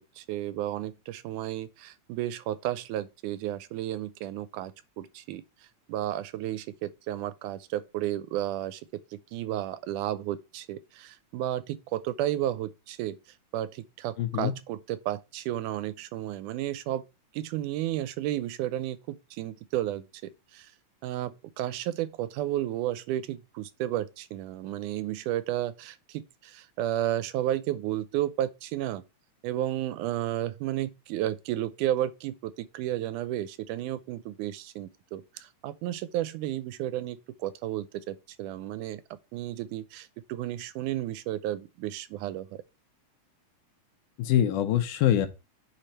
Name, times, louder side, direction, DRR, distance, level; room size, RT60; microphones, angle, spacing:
voice 1, 0.0-5.4 5.9-8.8 9.3-13.2 13.5-17.0 17.3-20.1 20.5-20.7 21.0-29.0 29.4-39.0 39.3-42.5, right 13 dB, 85° right, 2.1 m, -32 dB
voice 2, 14.2-14.5 44.2-45.3, left 11 dB, 90° left, 2.4 m, -24 dB
8.7 x 3.3 x 4.2 m
omnidirectional pair, 3.5 m